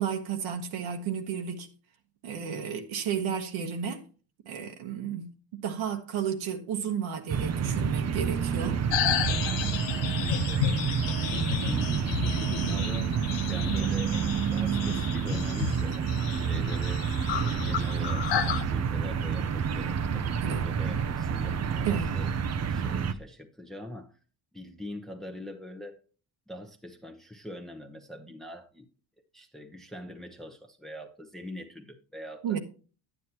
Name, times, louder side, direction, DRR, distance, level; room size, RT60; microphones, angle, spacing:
voice 1, 0.0-1.7 2.2-4.0 4.4-8.8 20.4-20.6 21.8-22.1 32.4-32.6, right 8 dB, 80° right, 1.4 m, -32 dB
sound 1, 7.3-23.1, right 7 dB, 35° right, 0.6 m, -29 dB
sound 2, 8.9-18.6, left 10 dB, 70° left, 1.2 m, -32 dB
voice 2, 11.1-14.2 14.5-17.1 17.4-22.3 22.7-24.2 24.5-26.0 26.5-28.9 29.3-32.6, left 1 dB, ahead, 0.9 m, -43 dB
11.0 x 9.5 x 2.9 m
cardioid pair, 160°, 46 cm